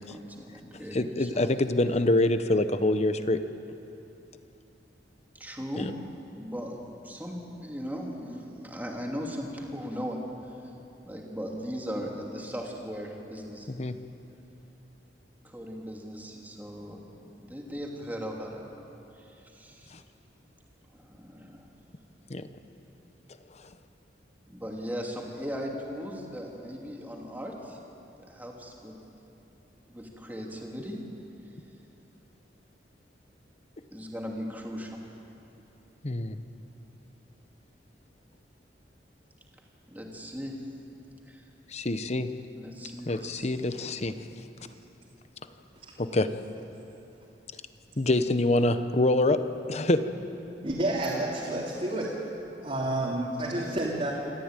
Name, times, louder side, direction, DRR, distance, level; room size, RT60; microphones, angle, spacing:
voice 1, 0.0-1.5 5.4-5.9 6.3-6.8 7.0-10.2 11.1-13.7 15.4-17.0 17.4-18.6 19.5-19.9 20.9-21.7 24.5-27.8 28.3-29.0 29.9-31.0 33.9-35.0 39.9-40.5 41.3-41.4 42.5-43.5, equal, 10° right, -1 dB, 2.8 m, -38 dB
voice 2, 0.9-3.4 5.8-5.9 13.7-14.0 22.3-22.5 36.0-36.4 41.7-42.3 43.1-44.1 46.0-46.3 48.0-50.1, left 2 dB, 40° left, 10 dB, 0.9 m, -25 dB
voice 3, 50.6-52.1 52.6-54.1, right 1 dB, 35° right, -5 dB, 2.9 m, -29 dB
27.0 x 14.0 x 9.1 m, 2.9 s
head